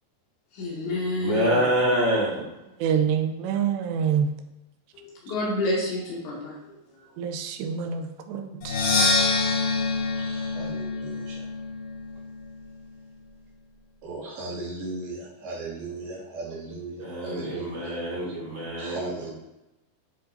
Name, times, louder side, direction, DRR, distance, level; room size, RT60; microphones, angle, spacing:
voice 1, 0.5-1.6 4.9-6.6 6.9-7.0, left 2 dB, 80° left, -4 dB, 4.6 m, -29 dB
voice 2, 1.1-2.5 17.0-19.3, right 1 dB, 35° right, -5 dB, 2.3 m, -26 dB
voice 3, 2.8-4.3 7.2-8.8, right 7 dB, 85° right, 6 dB, 2.8 m, -26 dB
Percussion, 8.6-12.4, left 3 dB, 60° left, 2.4 m, -26 dB
voice 4, 10.1-11.5 14.0-18.0 18.8-19.3, right 2 dB, 60° right, -7 dB, 4.3 m, -37 dB
9.9 x 8.4 x 2.8 m, 0.93 s
omnidirectional pair, 5.1 m